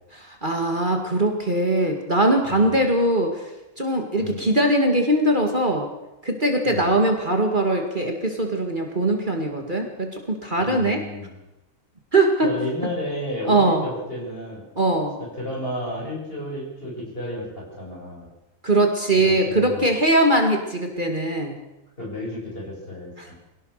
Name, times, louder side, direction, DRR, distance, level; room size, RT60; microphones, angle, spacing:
voice 1, 0.2-3.5 3.8-5.9 6.2-11.0 12.1-12.5 13.5-13.8 14.8-15.2 18.6-21.6, right 1 dB, 35° right, 3 dB, 2.3 m, -21 dB
voice 2, 2.4-2.9 4.2-4.5 6.6-7.0 10.6-11.3 12.4-14.6 15.2-18.3 19.1-19.9 22.0-23.4, equal, 40° left, -2 dB, 8.0 m, -32 dB
23.0 x 17.5 x 6.7 m, 0.98 s
omnidirectional pair, 1.5 m